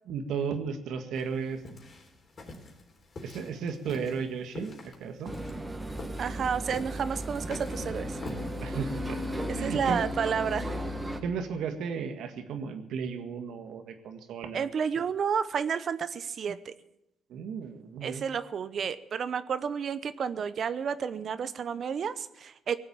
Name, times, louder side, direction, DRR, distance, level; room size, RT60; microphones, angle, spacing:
voice 1, 0.1-1.6 3.2-5.4 8.6-9.2 9.5-10.0 11.2-14.6 17.3-18.2, right 6 dB, 80° right, 7 dB, 1.8 m, -34 dB
sound 1, 1.2-8.9, left 2 dB, 45° left, 3.8 m, -45 dB
sound 2, 5.2-11.2, equal, 20° right, 2.0 m, -35 dB
voice 2, 6.2-8.2 9.6-10.7 14.5-16.7 18.0-22.8, right 7 dB, 55° right, 13 dB, 0.8 m, -31 dB
18.5 x 8.0 x 8.8 m, 0.86 s
cardioid pair, 90°, 0 cm